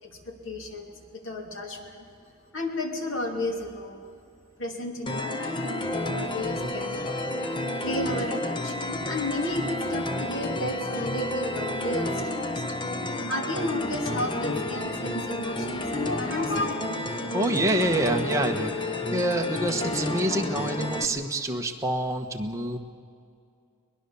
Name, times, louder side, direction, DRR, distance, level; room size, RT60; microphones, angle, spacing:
voice 1, 0.0-2.0 2.5-4.0 4.6-7.3 7.8-16.7, left 1 dB, 60° left, 3 dB, 2.6 m, -33 dB
sound 1, 5.1-21.1, left 1 dB, 20° left, 0.9 m, -30 dB
voice 2, 17.3-18.7 19.1-22.8, right 1 dB, 15° right, 2 dB, 1.3 m, -26 dB
22.5 x 20.5 x 7.1 m, 2.4 s
head